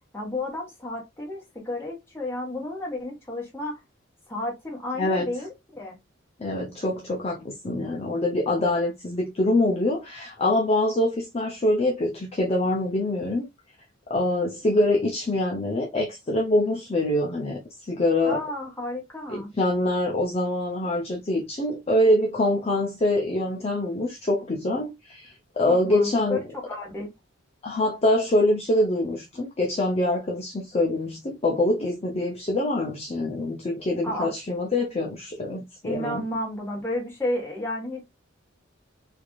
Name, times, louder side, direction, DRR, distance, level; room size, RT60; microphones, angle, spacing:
voice 1, 0.1-3.8 4.3-6.0 18.3-19.5 25.7-26.4 26.6-27.1 34.0-34.3 35.8-38.1, left 1 dB, 15° left, 1.4 m, -32 dB
voice 2, 6.4-13.5 14.1-17.6 17.9-18.4 19.3-26.4 27.6-36.2, left 1 dB, 30° left, 0.6 m, -24 dB
3.2 x 2.6 x 2.4 m
head